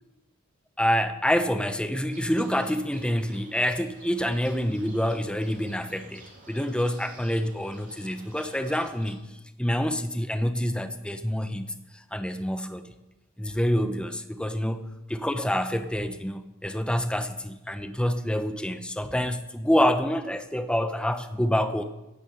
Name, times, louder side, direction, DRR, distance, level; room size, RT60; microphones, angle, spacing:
voice 1, 0.8-9.2 9.6-12.9 13.4-21.8, equal, 5° left, 9 dB, 0.8 m, -27 dB
sound 1, 2.1-9.1, right 2 dB, 40° right, 3.0 m, -51 dB
16.0 x 9.6 x 5.8 m, 1.0 s
head